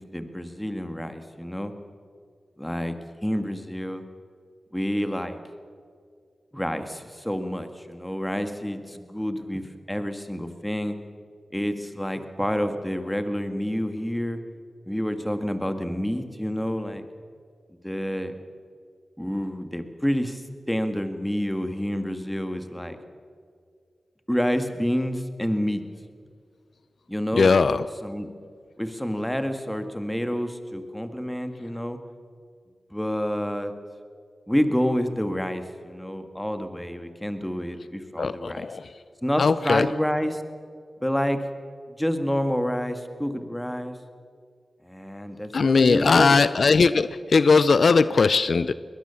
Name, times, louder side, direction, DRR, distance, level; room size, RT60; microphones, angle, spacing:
voice 1, 0.0-1.7 2.6-3.0 3.2-4.0 4.7-5.4 6.5-9.6 9.9-11.0 11.5-14.4 14.9-17.0 17.8-18.4 19.2-23.0 24.3-25.8 27.1-27.7 28.0-28.3 28.8-32.0 32.9-33.7 34.5-38.7 39.2-40.4 41.0-41.4 42.0-44.0 44.8-46.4, equal, 5° left, 8 dB, 1.9 m, -28 dB
voice 2, 27.4-27.9 38.2-38.9 39.4-39.9 45.5-48.7, left 4 dB, 65° left, 15 dB, 0.5 m, -19 dB
21.5 x 20.0 x 7.1 m, 2.1 s
cardioid pair, 65°, 0 cm